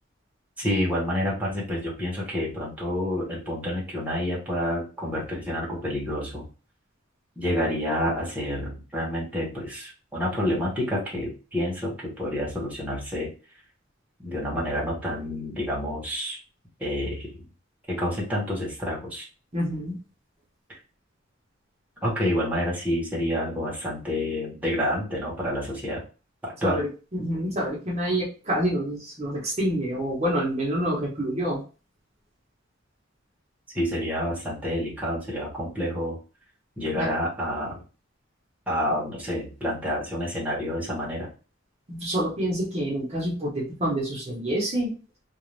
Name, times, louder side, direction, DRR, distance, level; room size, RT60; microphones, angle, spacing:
voice 1, 0.6-6.5 7.4-13.3 14.2-16.4 16.8-17.4 17.9-19.2 22.0-26.0 26.4-26.8 33.7-36.2 36.8-37.8 38.7-41.3, equal, 10° right, -4 dB, 1.0 m, -28 dB
voice 2, 19.5-20.0 26.6-31.6 36.9-37.1 41.9-44.9, equal, 35° right, -4 dB, 0.8 m, -27 dB
2.5 x 2.3 x 3.1 m, 0.34 s
head